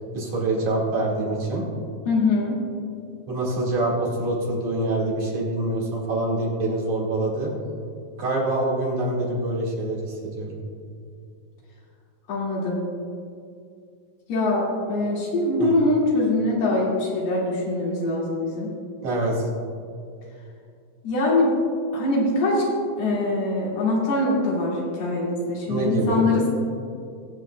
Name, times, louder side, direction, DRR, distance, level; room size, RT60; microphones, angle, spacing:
voice 1, 0.1-1.6 3.3-7.5 8.2-10.6 15.6-15.7 19.0-19.5 25.7-26.2, right 2 dB, 55° right, -4 dB, 2.9 m, -25 dB
voice 2, 2.1-2.6 12.3-12.8 14.3-18.8 21.0-21.5 21.9-22.7 23.0-26.5, left 2 dB, 85° left, -5 dB, 4.1 m, -23 dB
22.0 x 8.3 x 2.2 m, 2.4 s
omnidirectional pair, 4.4 m